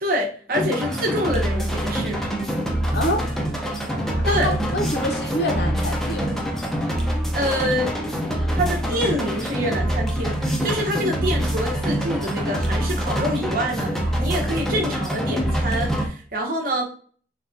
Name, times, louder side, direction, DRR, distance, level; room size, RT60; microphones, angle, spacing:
voice 1, 0.0-2.2 4.2-4.5 6.8-7.0 7.3-8.0 8.5-16.9, equal, 50° right, 0 dB, 0.8 m, -26 dB
sound 1, 0.5-16.1, equal, ahead, 0.4 m, -25 dB
voice 2, 2.9-3.3 4.2-6.3, left 1 dB, 65° left, 2 dB, 0.7 m, -26 dB
3.4 x 2.3 x 2.5 m, 0.43 s
head